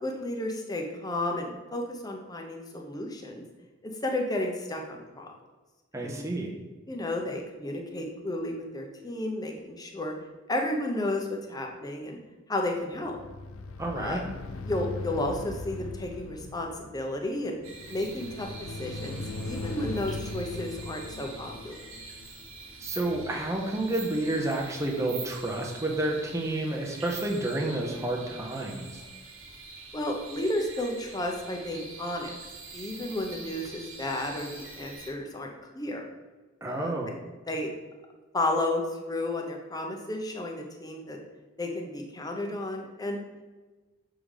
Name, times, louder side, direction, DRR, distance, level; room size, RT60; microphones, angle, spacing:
voice 1, 0.0-3.4 3.8-5.3 6.0-6.2 6.9-10.1 10.5-12.2 12.5-13.2 13.9-14.2 14.6-17.6 17.9-18.5 18.8-21.8 29.9-32.4 32.7-36.0 36.7-36.9 37.5-37.7 38.3-41.2 41.6-43.2, left 1 dB, 20° left, 2 dB, 0.8 m, -32 dB
voice 2, 5.9-6.5 13.8-14.2 22.8-29.0 36.6-37.1, right 2 dB, 15° right, -1 dB, 0.8 m, -30 dB
sound 1, 13.0-23.4, left 2 dB, 85° left, 0.5 m, -39 dB
sound 2, 17.6-35.1, right 4 dB, 85° right, 1.2 m, -45 dB
6.7 x 3.8 x 4.9 m, 1.3 s
head